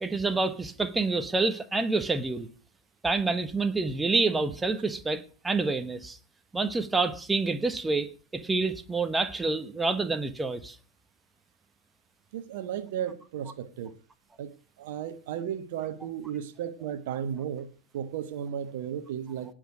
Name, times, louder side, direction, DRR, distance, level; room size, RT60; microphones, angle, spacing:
voice 1, 0.0-2.5 3.0-6.2 6.5-10.8, right 3 dB, 10° right, 1.1 m, -28 dB
voice 2, 12.3-13.9 14.4-17.7 17.9-19.5, right 9 dB, 55° right, 1.2 m, -34 dB
18.5 x 6.5 x 4.9 m
figure-of-eight pair, 90°, 0 cm